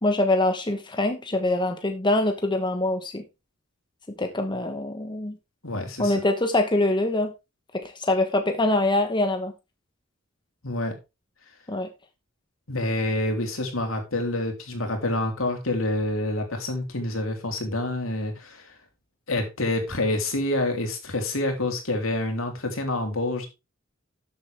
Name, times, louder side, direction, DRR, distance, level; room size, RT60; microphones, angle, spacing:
voice 1, 0.0-3.2 4.2-5.3 6.0-7.3 7.7-9.5 11.7-11.9, left 2 dB, 25° left, 1.2 m, -24 dB
voice 2, 5.6-6.2 10.6-11.0 12.7-18.7 19.3-23.5, left 1 dB, 75° left, 3.3 m, -27 dB
12.5 x 7.7 x 3.5 m
head